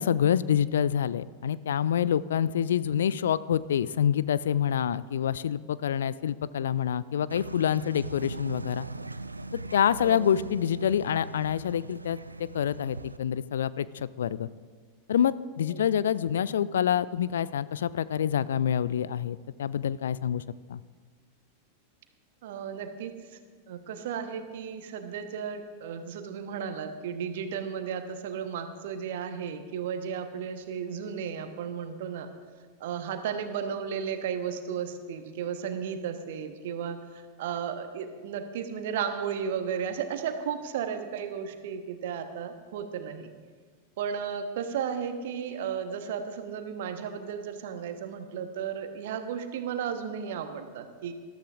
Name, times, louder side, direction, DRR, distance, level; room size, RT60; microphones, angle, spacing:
voice 1, 0.0-8.9 9.5-12.2 12.5-14.5 15.1-20.4 20.7-20.8, left 9 dB, 65° left, 18 dB, 0.3 m, -27 dB
sound 1, 7.3-13.2, right 3 dB, 80° right, 0.4 m, -40 dB
voice 2, 22.4-23.4 23.7-32.3 32.8-43.3 44.0-51.1, right 7 dB, 55° right, 8 dB, 1.1 m, -34 dB
20.5 x 12.5 x 2.5 m, 1.5 s
figure-of-eight pair, 90°, 0 cm